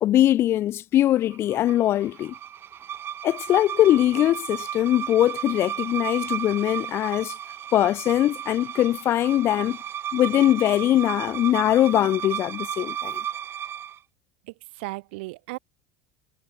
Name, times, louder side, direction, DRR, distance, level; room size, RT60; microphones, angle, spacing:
voice 1, 0.0-2.3 3.2-7.3 7.7-9.8 10.1-13.2, left 13 dB, 45° left, 0.4 m, -21 dB
sound 1, 1.3-14.0, right 10 dB, 40° right, 2.5 m, -34 dB
voice 2, 14.5-15.6, right 23 dB, 70° right, 1.4 m, -36 dB
hypercardioid pair, 80°, 6 cm